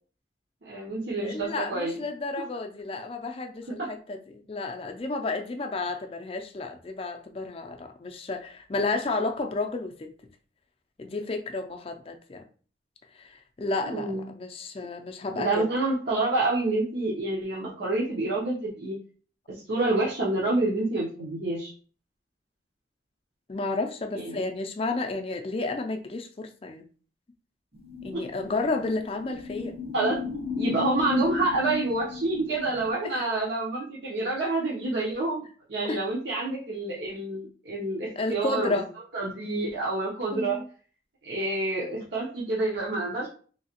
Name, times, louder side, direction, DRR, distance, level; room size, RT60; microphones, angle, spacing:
voice 1, 0.6-1.9 13.9-14.3 15.3-19.0 19.5-21.7 24.1-24.4 28.1-28.2 29.9-30.2 30.6-35.4 35.7-38.8 39.1-40.6 41.2-43.3, right 2 dB, 70° right, 0.8 m, -28 dB
voice 2, 1.2-10.1 11.0-12.4 13.1-15.7 23.5-26.8 28.0-29.8 33.0-33.3 35.8-36.0 38.2-38.9 40.3-40.7, left 3 dB, 30° left, 0.4 m, -32 dB
sound 1, 27.7-32.9, left 5 dB, 30° right, 0.7 m, -34 dB
3.1 x 2.8 x 2.8 m
head